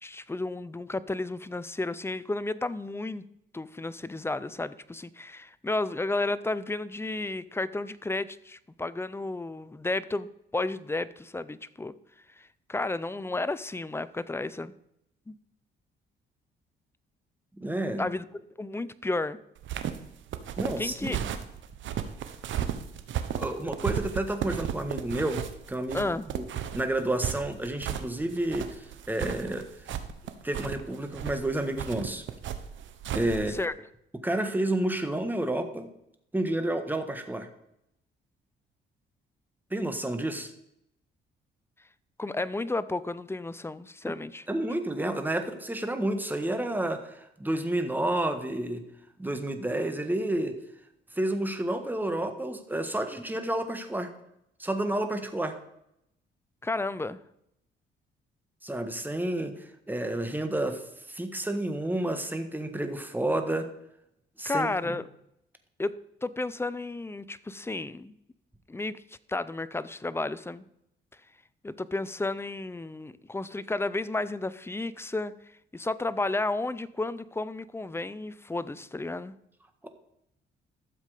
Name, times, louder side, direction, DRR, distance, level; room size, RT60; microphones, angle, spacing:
voice 1, 0.0-3.3 3.5-11.9 12.4-14.7 15.3-15.4 18.0-18.2 18.6-19.4 20.8-21.2 25.9-26.3 33.5-33.7 42.2-44.4 56.6-57.2 64.4-65.0 65.8-65.9 66.2-68.1 68.7-69.0 69.3-70.7 71.6-75.3 75.7-79.3, left 2 dB, 10° left, 16 dB, 0.5 m, -32 dB
voice 2, 17.6-18.1 20.6-21.2 23.4-26.1 26.7-29.6 30.4-32.2 33.1-33.6 34.2-35.9 36.3-37.5 39.7-40.5 44.0-44.1 44.5-48.8 49.2-50.6 51.1-54.1 54.6-55.5 58.6-63.7 64.4-65.0 79.8-79.9, right 1 dB, 10° right, 7 dB, 1.6 m, -30 dB
sound 1, 19.6-33.7, right 9 dB, 75° right, 1.1 m, -35 dB
13.0 x 7.4 x 5.0 m, 0.78 s
cardioid pair, 90°, 20 cm